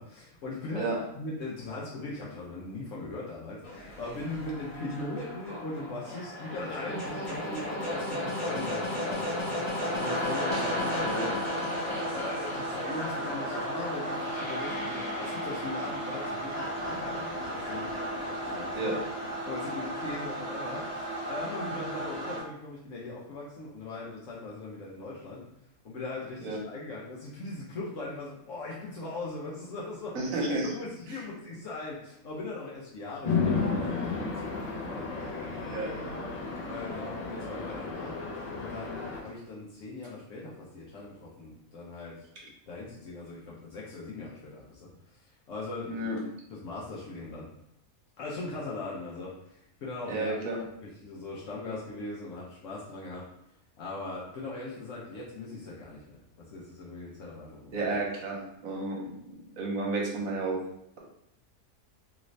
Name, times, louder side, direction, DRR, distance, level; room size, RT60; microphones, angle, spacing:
voice 1, 0.0-0.9 1.1-11.3 11.7-18.9 19.4-25.4 25.8-30.2 30.7-36.2 36.6-38.2 38.6-42.2 42.4-45.2 45.5-46.0 46.5-47.5 48.2-53.2 53.8-57.9, left 2 dB, 65° left, -5 dB, 1.0 m, -40 dB
sound 1, 3.6-19.7, left 1 dB, 30° left, 1.0 m, -35 dB
sound 2, 9.8-22.4, right 1 dB, 55° right, 0.9 m, -35 dB
voice 2, 30.1-30.7 35.7-35.9 45.9-46.2 50.1-50.5 57.7-59.2 59.6-60.6, right 2 dB, 75° right, -2 dB, 1.3 m, -31 dB
Chatter / Traffic noise roadway noise / Train, 33.2-39.2, left 4 dB, 85° left, 0.3 m, -33 dB
3.1 x 2.6 x 3.1 m, 0.75 s
omnidirectional pair, 1.5 m